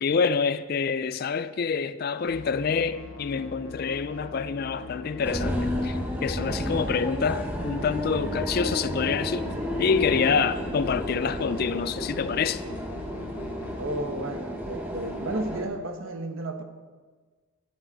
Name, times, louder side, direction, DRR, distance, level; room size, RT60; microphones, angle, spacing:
voice 1, 0.0-9.5 9.8-12.6, left 5 dB, 45° left, 0.3 m, -27 dB
sound 1, 2.2-13.8, left 3 dB, 75° left, 1.0 m, -42 dB
sound 2, 5.2-15.6, equal, 10° right, 1.1 m, -32 dB
voice 2, 13.8-16.6, right 2 dB, 70° right, 1.0 m, -33 dB
11.5 x 10.0 x 4.0 m
head